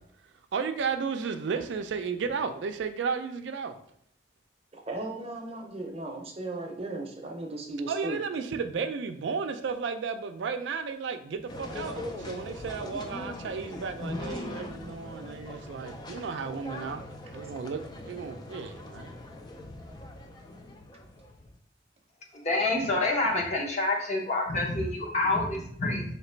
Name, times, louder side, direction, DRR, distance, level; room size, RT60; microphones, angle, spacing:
voice 1, 0.5-3.8 7.9-17.0 17.3-19.1, right 5 dB, 80° right, 7 dB, 0.4 m, -33 dB
voice 2, 4.7-8.2, right 2 dB, 35° right, 1 dB, 0.6 m, -36 dB
sound 1, 11.5-21.6, left 1 dB, 20° left, 0.3 m, -41 dB
voice 3, 22.3-26.0, left 2 dB, 35° left, 0 dB, 0.7 m, -27 dB
3.2 x 2.9 x 4.4 m, 0.70 s
head